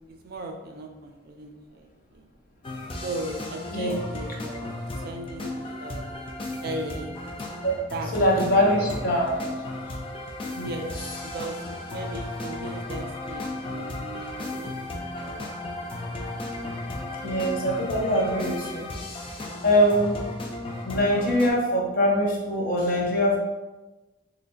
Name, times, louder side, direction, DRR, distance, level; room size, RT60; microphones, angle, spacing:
voice 1, 0.2-1.9 2.1-2.3 3.0-4.7 5.0-6.1 6.6-7.2 7.9-8.1 8.8-9.0 10.6-10.9 11.3-11.5 11.9-15.4, right 2 dB, 50° right, 3 dB, 0.4 m, -37 dB
sound 1, 2.6-21.5, left 2 dB, 25° left, 0.3 m, -35 dB
voice 2, 8.1-9.4 10.5-10.9 17.2-18.8 19.6-20.2 20.8-23.4, equal, 45° left, -2 dB, 0.7 m, -23 dB
3.9 x 3.2 x 2.3 m, 1.1 s
head